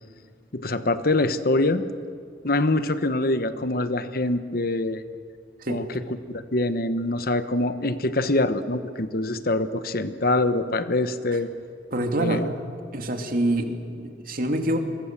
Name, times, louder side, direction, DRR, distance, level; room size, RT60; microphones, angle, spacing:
voice 1, 0.5-1.8 2.4-5.0 5.7-5.8 6.3-11.5 12.2-12.5, left 2 dB, 55° left, 11 dB, 1.1 m, -24 dB
voice 2, 11.9-12.5 12.9-14.8, right 1 dB, 50° right, 4 dB, 2.5 m, -26 dB
28.0 x 23.0 x 7.5 m, 2.2 s
head